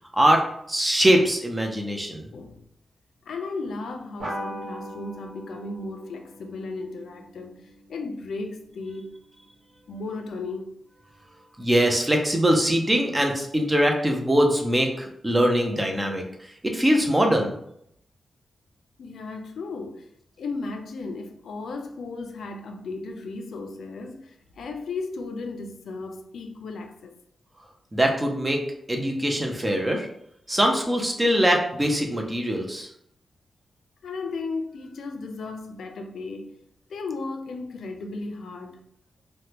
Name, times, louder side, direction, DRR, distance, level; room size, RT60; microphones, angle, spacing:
voice 1, 0.7-2.3 11.6-17.6 27.9-28.6 28.9-30.1 30.5-32.9, equal, 15° right, 0.4 m, -22 dB
voice 2, 2.3-2.7 3.3-9.1 9.9-10.7 19.0-20.1 20.4-27.1 34.0-36.6 36.9-38.8, left 3 dB, 90° left, 0.3 m, -35 dB
sound 1, 4.2-9.1, equal, 85° right, 1.1 m, -40 dB
3.2 x 2.1 x 2.8 m
wide cardioid pair, 165°, 0 cm